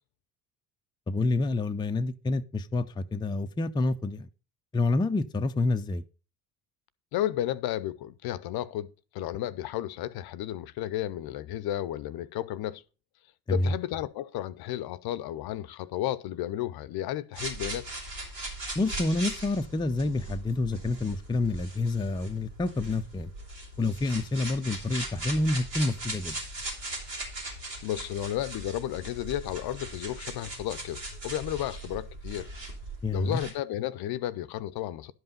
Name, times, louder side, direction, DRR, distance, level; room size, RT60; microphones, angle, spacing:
voice 1, 1.1-4.3 4.7-6.0 13.5-13.7 18.7-23.3 23.8-26.4 33.0-33.4, left 2 dB, 10° left, 0.5 m, -28 dB
voice 2, 7.1-12.8 13.5-17.9 27.8-32.5 33.1-35.1, left 13 dB, 50° left, 0.7 m, -33 dB
sound 1, 17.3-33.5, right 1 dB, 90° right, 3.3 m, -39 dB
11.0 x 5.5 x 5.4 m
hypercardioid pair, 60°, 48 cm